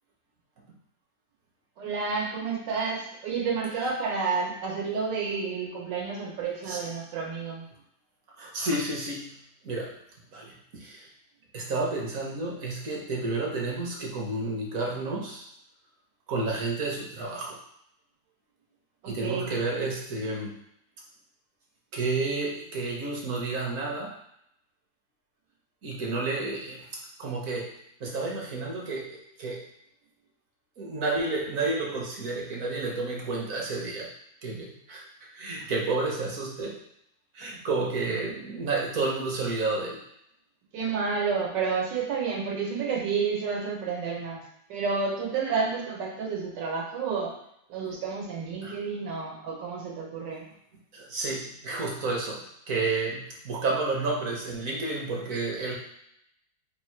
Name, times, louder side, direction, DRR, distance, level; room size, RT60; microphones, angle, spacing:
voice 1, 1.8-7.7 19.0-19.5 40.7-44.4 44.7-47.3 47.7-50.5, right 5 dB, 85° right, -3 dB, 1.6 m, -30 dB
voice 2, 8.4-9.3 9.6-9.9 10.3-11.1 11.5-15.5 16.3-17.6 19.1-20.5 21.9-24.1 25.8-26.9 27.2-27.7 28.0-29.6 30.8-34.1 34.4-36.8 37.3-40.0 48.6-48.8 50.9-55.8, right 3 dB, 60° right, -2 dB, 1.1 m, -31 dB
3.5 x 2.4 x 4.4 m, 0.76 s
omnidirectional pair, 1.9 m